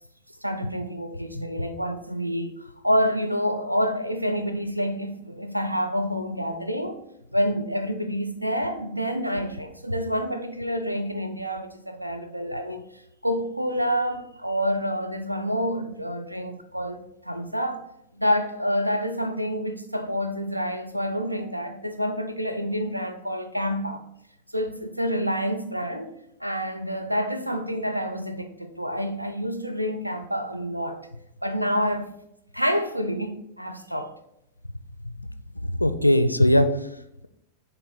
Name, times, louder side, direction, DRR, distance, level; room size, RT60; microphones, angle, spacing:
voice 1, 0.4-7.0 7.3-17.8 18.1-24.0 24.5-26.1 26.4-31.0 31.4-32.1 32.5-34.1, equal, 90° right, 0.6 m, -28 dB
voice 2, 1.3-1.7 35.0-35.1 35.5-37.3, left 1 dB, 85° left, 0.4 m, -22 dB
6.8 x 2.9 x 5.6 m
figure-of-eight pair, 90°, 0 cm